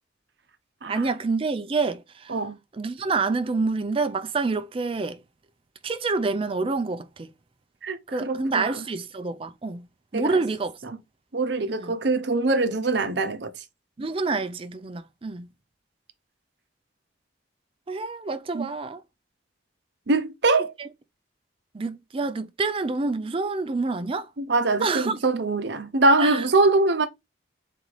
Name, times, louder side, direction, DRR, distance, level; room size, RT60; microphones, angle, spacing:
voice 1, 0.9-2.4 2.7-5.2 5.8-7.3 8.1-9.9 10.1-10.8 11.8-12.0 14.0-15.5 17.9-19.0 20.8-20.9 21.7-24.3 24.8-25.2 26.2-26.5, right 3 dB, 30° right, 0.4 m, -27 dB
voice 2, 7.8-8.7 10.1-10.4 11.3-13.5 18.5-18.7 20.1-20.7 24.5-27.1, right 2 dB, 60° right, 0.7 m, -23 dB
4.1 x 3.1 x 4.0 m
head